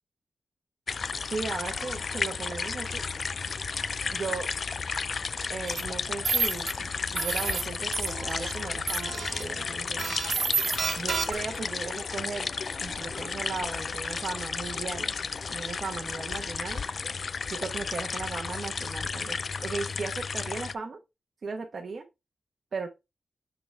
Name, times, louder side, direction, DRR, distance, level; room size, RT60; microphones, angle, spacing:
sound 1, 0.9-20.7, left 5 dB, 55° left, 0.4 m, -33 dB
voice 1, 1.3-3.0 4.1-4.5 5.5-10.1 10.9-12.5 12.8-15.2 15.5-16.8 17.5-21.0 21.4-22.1 22.7-22.9, right 4 dB, 55° right, 1.0 m, -37 dB
sound 2, 5.7-5.8 6.2-6.7 7.1-7.6 7.9-8.5 8.9-9.4 10.0-11.6, right 5 dB, 90° right, 1.3 m, -30 dB
8.5 x 3.9 x 3.3 m
wide cardioid pair, 115°, 0 cm